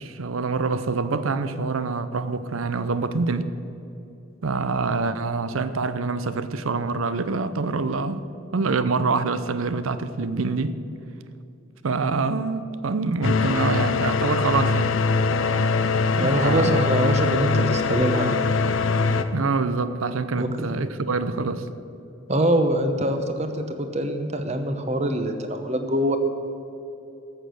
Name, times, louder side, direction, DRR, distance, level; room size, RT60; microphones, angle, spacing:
voice 1, 0.0-3.5 4.4-8.3 8.5-10.8 11.8-14.9 16.2-16.7 19.3-21.7, right 4 dB, 90° right, 0.6 m, -25 dB
sound 1, 13.2-19.2, left 4 dB, 75° left, 0.6 m, -22 dB
voice 2, 16.1-18.4 20.4-20.7 22.3-26.2, right 1 dB, 35° right, 0.9 m, -24 dB
13.5 x 6.7 x 7.8 m
head